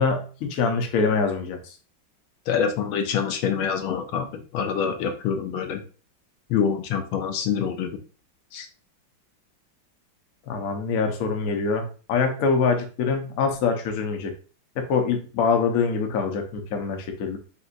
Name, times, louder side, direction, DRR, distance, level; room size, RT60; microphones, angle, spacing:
voice 1, 0.0-1.7 10.5-14.3 14.8-17.4, left 5 dB, 60° left, 4 dB, 0.9 m, -24 dB
voice 2, 2.5-4.3 4.5-5.8 6.5-7.9 8.5-8.7, left 7 dB, 90° left, 6 dB, 1.5 m, -25 dB
4.1 x 3.6 x 2.5 m, 0.37 s
omnidirectional pair, 2.2 m